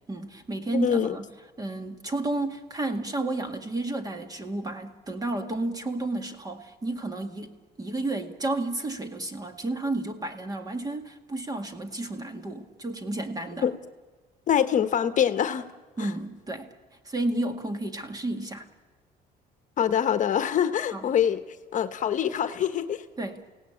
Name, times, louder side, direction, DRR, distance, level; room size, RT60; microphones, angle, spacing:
voice 1, 0.1-1.2 1.6-13.7 16.0-16.7 17.1-18.7 20.9-21.1 23.2-23.4, right 2 dB, 20° right, 6 dB, 2.0 m, -32 dB
voice 2, 0.7-1.2 13.6-13.7 14.5-15.6 16.0-16.1 19.8-21.4 21.7-23.0, left 9 dB, 50° left, 10 dB, 1.1 m, -24 dB
29.0 x 17.0 x 8.8 m, 1.3 s
cardioid pair, 110°, 17 cm